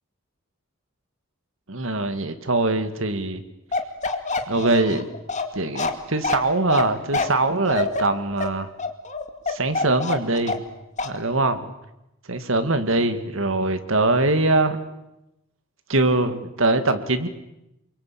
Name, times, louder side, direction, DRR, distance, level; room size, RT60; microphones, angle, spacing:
voice 1, 1.7-3.4 4.5-5.1 5.5-8.7 9.5-10.6 11.0-11.7 12.3-14.8 15.9-17.3, right 2 dB, 65° right, 9 dB, 2.2 m, -22 dB
Bark, 3.7-10.7 11.0-11.2, left 3 dB, 35° left, 2.3 m, -26 dB
29.0 x 23.0 x 8.7 m, 0.90 s
head